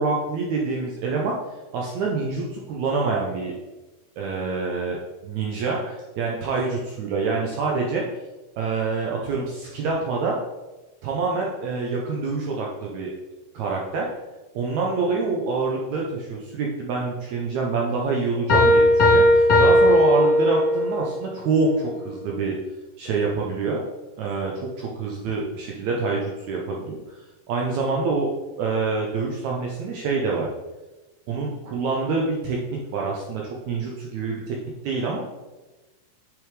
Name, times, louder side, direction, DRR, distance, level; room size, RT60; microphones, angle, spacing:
voice 1, 0.0-1.4 1.7-3.5 4.2-8.0 8.6-10.4 11.0-13.1 13.5-14.1 14.6-22.6 23.0-23.8 24.2-27.2 27.5-28.3 28.6-30.5 31.3-32.6 32.9-34.6 34.8-35.2, right 4 dB, 70° right, -2 dB, 1.9 m, -26 dB
Piano, 18.5-21.0, left 1 dB, 50° left, 2.0 m, -16 dB
7.0 x 6.7 x 3.3 m, 1.1 s
omnidirectional pair, 3.8 m